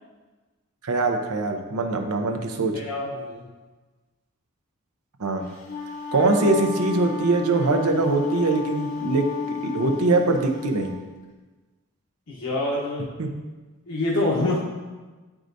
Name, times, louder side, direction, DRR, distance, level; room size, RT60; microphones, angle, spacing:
voice 1, 0.8-2.7 5.2-5.4 6.1-10.9 13.2-13.3, right 3 dB, 90° right, 4 dB, 0.7 m, -22 dB
voice 2, 2.7-3.5 12.3-13.2 13.9-14.6, left 2 dB, 75° left, -5 dB, 1.0 m, -26 dB
Wind instrument woodwind instrument, 5.5-10.9, left 6 dB, 40° left, 0.8 m, -32 dB
9.1 x 4.8 x 2.6 m, 1.3 s
head